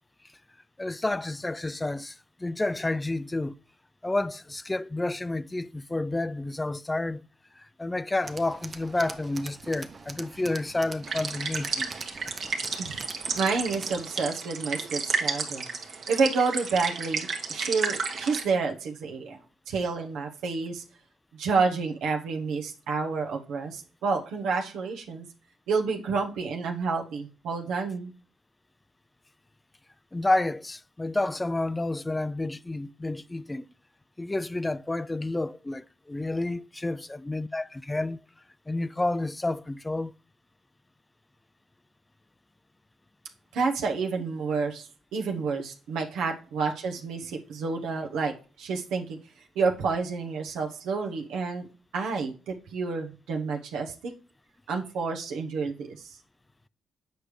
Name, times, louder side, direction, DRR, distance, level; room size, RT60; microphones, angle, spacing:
voice 1, 0.8-3.6 4.0-7.2 7.6-11.9 30.1-33.7 34.2-38.2 38.7-40.1, left 2 dB, 15° left, 0.3 m, -30 dB
Tools, 8.2-14.1, right 4 dB, 35° right, 0.7 m, -43 dB
sound 1, 11.0-18.4, right 4 dB, 55° right, 1.3 m, -32 dB
voice 2, 13.3-15.6 16.1-19.4 19.7-20.8 21.3-25.3 25.7-28.1 43.5-49.2 49.5-51.7 51.9-54.1 54.7-56.2, right 4 dB, 85° right, 1.0 m, -29 dB
7.9 x 5.1 x 3.2 m
cardioid pair, 90°, 0 cm